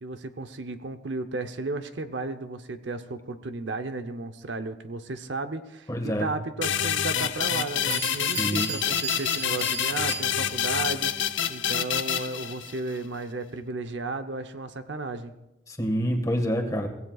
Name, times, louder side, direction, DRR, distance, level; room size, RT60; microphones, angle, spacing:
voice 1, 0.0-15.3, right 3 dB, 70° right, 9 dB, 0.8 m, -34 dB
voice 2, 5.9-6.3 8.3-8.7 15.7-16.9, equal, 20° left, 3 dB, 1.7 m, -27 dB
sound 1, 6.6-13.0, left 9 dB, 80° left, 0.7 m, -27 dB
Bell, 7.9-10.7, right 5 dB, 20° right, 0.8 m, -36 dB
24.0 x 16.5 x 2.4 m, 0.95 s
head